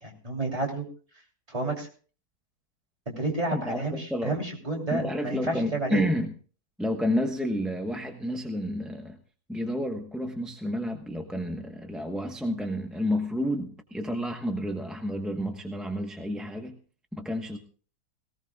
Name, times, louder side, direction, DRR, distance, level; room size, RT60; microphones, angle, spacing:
voice 1, 0.0-0.8 1.5-1.9 3.2-6.0, right 2 dB, 20° right, 0 dB, 3.2 m, -30 dB
voice 2, 3.5-4.4 4.9-6.3 6.8-9.2 9.5-16.8 17.1-17.6, equal, ahead, 3 dB, 0.8 m, -30 dB
18.5 x 18.0 x 2.3 m, 0.39 s
omnidirectional pair, 1.7 m